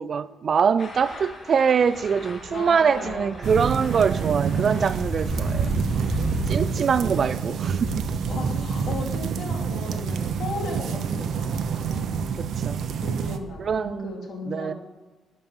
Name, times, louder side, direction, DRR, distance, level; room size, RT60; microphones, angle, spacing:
voice 1, 0.0-5.7 6.5-8.0 8.6-8.7 12.3-12.8 13.6-14.1 14.5-14.7, right 6 dB, 50° right, 0.5 m, -24 dB
sound 1, 0.8-7.9, left 2 dB, 35° left, 1.6 m, -44 dB
sound 2, 1.1-1.4 1.9-10.7 11.0-13.9, equal, 20° left, 2.1 m, -34 dB
voice 2, 2.5-3.5 7.0-7.6 8.3-12.4 13.0-14.7, left 2 dB, 60° left, 2.7 m, -36 dB
sound 3, 3.4-13.4, right 7 dB, 65° right, 0.9 m, -28 dB
11.0 x 5.4 x 7.1 m
cardioid pair, 90°, 0 cm